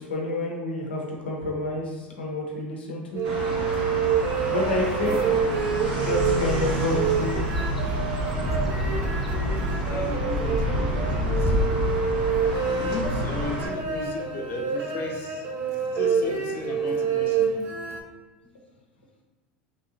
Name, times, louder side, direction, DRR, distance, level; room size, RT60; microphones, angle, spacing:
voice 1, 0.0-3.2 4.5-5.2 6.0-7.4, left 2 dB, 85° left, -1 dB, 0.7 m, -28 dB
sound 1, 3.1-18.0, right 6 dB, 50° right, 0.5 m, -28 dB
sound 2, 3.2-13.7, right 1 dB, 80° right, 0.8 m, -30 dB
sound 3, 5.2-12.1, left 1 dB, ahead, 0.5 m, -30 dB
voice 2, 9.9-11.5 12.7-15.5 15.9-17.7, left 4 dB, 45° left, 3 dB, 0.5 m, -35 dB
3.1 x 2.7 x 2.6 m, 1.3 s
hypercardioid pair, 85°, 6 cm